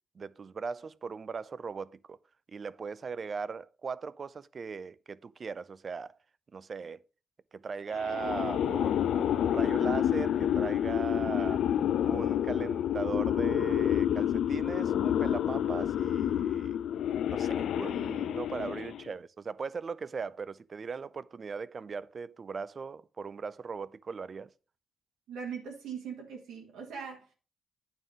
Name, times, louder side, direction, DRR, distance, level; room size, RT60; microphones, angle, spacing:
voice 1, 0.2-2.2 2.5-6.1 6.5-7.0 7.5-11.7 12.1-16.8 17.3-24.5, right 5 dB, 45° right, 0.4 m, -38 dB
sound 1, 8.0-19.1, left 10 dB, 75° left, 0.4 m, -29 dB
voice 2, 25.3-27.3, right 6 dB, 90° right, 1.8 m, -40 dB
9.1 x 3.7 x 6.3 m
cardioid pair, 80°, 0 cm